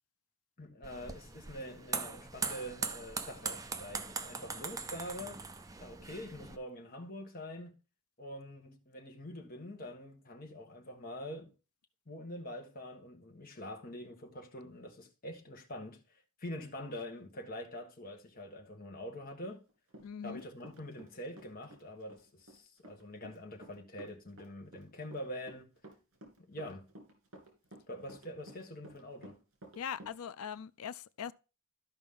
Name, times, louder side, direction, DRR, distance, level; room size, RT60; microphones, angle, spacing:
voice 1, 0.6-5.5 5.8-7.7 8.2-11.5 12.1-19.6 20.2-25.7 26.5-26.9 27.9-29.4, left 1 dB, 40° left, 1.4 m, -45 dB
sound 1, 0.8-6.6, right 4 dB, 15° right, 0.5 m, -40 dB
Run, 19.4-21.1 21.4-30.2, right 1 dB, 75° right, 2.4 m, -53 dB
voice 2, 20.0-20.4 29.8-31.3, left 7 dB, 85° left, 0.4 m, -41 dB
13.0 x 5.1 x 3.7 m
head